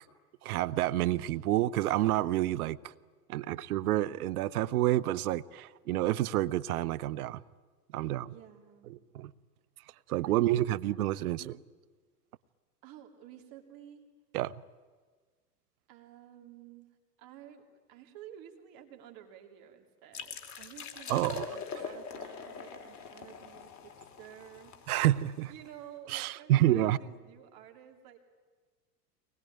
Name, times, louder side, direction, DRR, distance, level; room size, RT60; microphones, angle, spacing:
voice 1, 0.4-2.8 3.3-7.4 7.9-8.3 8.9-9.3 10.1-11.5 14.3-14.5 21.1-21.5 24.9-25.5 26.1-27.0, right 14 dB, 65° right, 0.8 m, -29 dB
voice 2, 7.9-9.0 10.2-10.8 11.3-11.6 12.8-14.1 15.9-16.9 17.2-25.1 25.5-28.2, right 11 dB, 45° right, 3.4 m, -52 dB
sound 1, 20.1-25.7, left 6 dB, 35° left, 3.0 m, -43 dB
23.5 x 20.0 x 9.4 m
hypercardioid pair, 90°, 48 cm